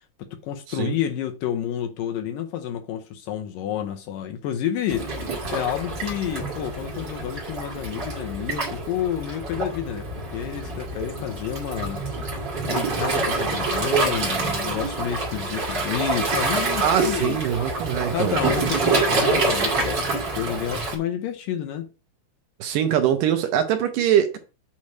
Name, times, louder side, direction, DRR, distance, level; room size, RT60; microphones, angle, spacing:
voice 1, 0.2-12.0 12.7-17.4 18.1-21.9, left 10 dB, 75° left, 2.2 m, -30 dB
Waves surf, 4.9-21.0, right 3 dB, 40° right, 1.7 m, -26 dB
voice 2, 16.8-18.4 22.6-24.4, right 10 dB, 75° right, 2.2 m, -22 dB
8.6 x 3.1 x 6.3 m
omnidirectional pair, 4.4 m